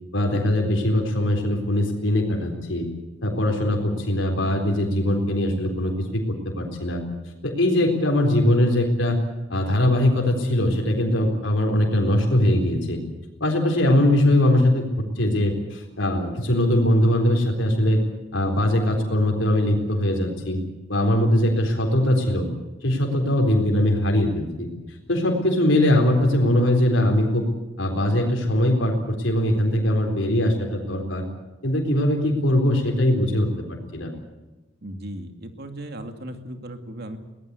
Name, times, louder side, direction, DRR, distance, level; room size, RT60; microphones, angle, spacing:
voice 1, 0.1-2.9 3.2-7.0 7.4-9.2 9.5-13.0 13.4-14.9 15.2-18.0 18.3-20.6 20.9-22.5 22.8-24.7 25.1-27.5 27.8-31.2 31.6-34.1, left 1 dB, 90° left, 2 dB, 4.0 m, -21 dB
voice 2, 34.8-37.2, right 1 dB, 55° right, 6 dB, 2.4 m, -36 dB
22.5 x 18.5 x 8.3 m, 1.1 s
head